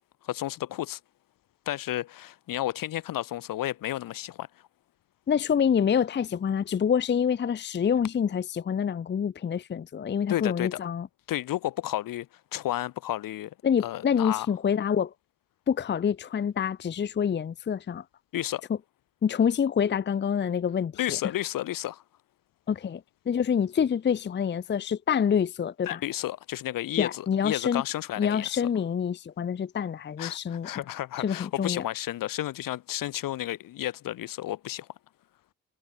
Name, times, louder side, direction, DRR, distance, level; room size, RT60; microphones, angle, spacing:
voice 1, 0.2-1.0 1.7-4.5 10.3-10.8 11.3-12.3 12.5-13.5 13.8-14.5 18.3-18.6 21.0-22.0 25.9-28.6 30.2-34.9, left 14 dB, 60° left, 1.2 m, -32 dB
voice 2, 5.3-11.1 13.6-15.1 15.7-18.0 19.2-21.2 22.7-26.0 27.0-27.8 28.2-30.7 31.2-31.9, left 7 dB, 30° left, 0.7 m, -27 dB
hypercardioid pair, 55°, 38 cm